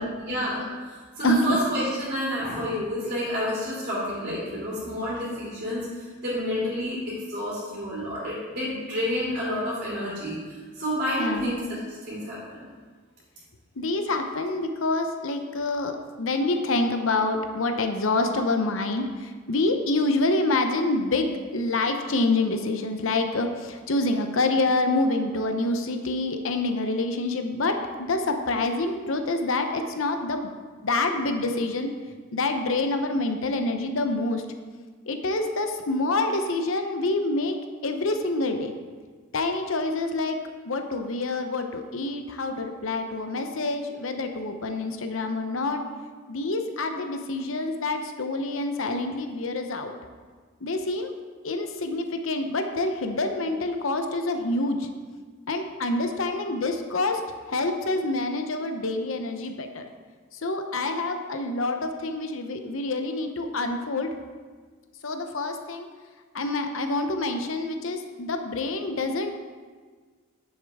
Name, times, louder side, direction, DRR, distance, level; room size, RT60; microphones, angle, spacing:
voice 1, 0.2-12.6, equal, 45° right, -9 dB, 2.8 m, -29 dB
voice 2, 1.2-1.6 11.2-11.5 13.8-30.5 30.8-31.9 32.3-34.4 35.1-37.6 37.8-38.7 39.3-40.4 40.6-45.8 46.3-49.9 50.6-51.1 51.4-54.8 55.5-57.2 57.5-59.8 60.4-64.1 65.0-65.9 66.3-69.3, left 2 dB, 70° left, 6 dB, 0.8 m, -27 dB
9.6 x 7.2 x 3.6 m, 1.5 s
head